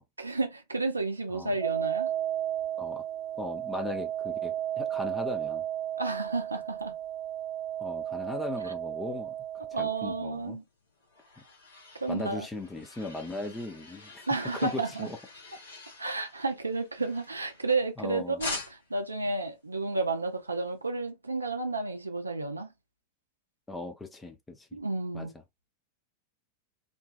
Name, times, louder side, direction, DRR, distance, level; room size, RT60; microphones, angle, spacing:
voice 1, 0.2-2.1 6.0-6.9 9.7-10.6 12.0-12.5 14.3-15.1 16.0-22.7 24.7-25.3, right 3 dB, 80° right, 0.4 m, -31 dB
sound 1, 1.6-10.2, right 11 dB, 25° right, 0.8 m, -33 dB
voice 2, 3.4-5.6 7.8-10.6 12.1-14.2 14.6-15.2 18.0-18.4 23.7-24.8 25.1-25.3, left 2 dB, 10° left, 0.4 m, -38 dB
sound 2, 10.7-18.0 18.4-19.0, left 3 dB, 70° left, 1.0 m, -44 dB
2.5 x 2.3 x 2.2 m
figure-of-eight pair, 90°, 0 cm